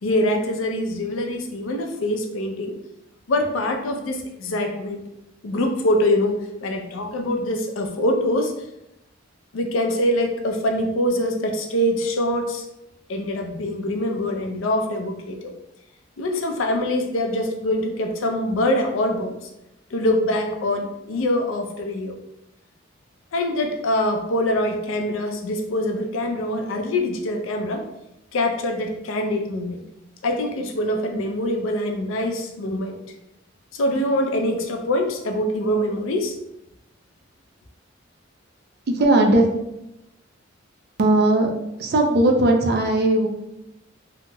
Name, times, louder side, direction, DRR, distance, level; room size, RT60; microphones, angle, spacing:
voice 1, 0.0-2.8 3.3-5.0 5.4-8.5 9.5-12.6 13.1-15.5 16.2-19.4 19.9-22.2 23.3-27.8 28.3-29.8 30.2-33.0 33.7-36.3, left 1 dB, 85° left, 3 dB, 0.5 m, -24 dB
voice 2, 38.9-39.5 41.0-41.5 41.8-43.3, right 2 dB, 55° right, 3 dB, 0.4 m, -18 dB
2.8 x 2.8 x 2.2 m, 0.86 s
head